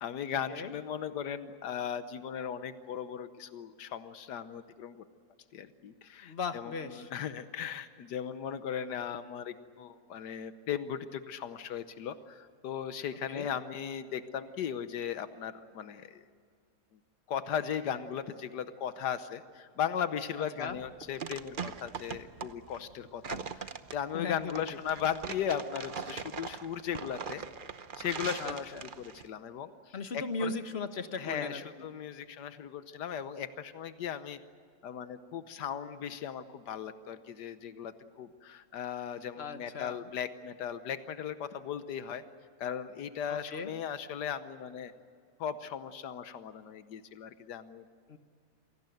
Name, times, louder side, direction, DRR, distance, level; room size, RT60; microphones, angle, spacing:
voice 1, 0.0-5.0 5.5-16.2 17.3-27.4 28.0-30.5 31.2-34.4 34.8-42.2 42.6-44.9 45.4-47.8, left 8 dB, 85° left, 11 dB, 1.5 m, -37 dB
voice 2, 6.2-7.1 13.3-13.5 20.4-20.8 24.1-24.6 28.4-28.9 29.9-31.9 39.4-40.0 43.3-43.7 48.1-48.2, left 4 dB, 40° left, 9 dB, 1.4 m, -38 dB
sound 1, 20.7-29.3, right 6 dB, 40° right, 0.8 m, -41 dB
27.5 x 18.5 x 9.2 m, 2.2 s
omnidirectional pair, 1.7 m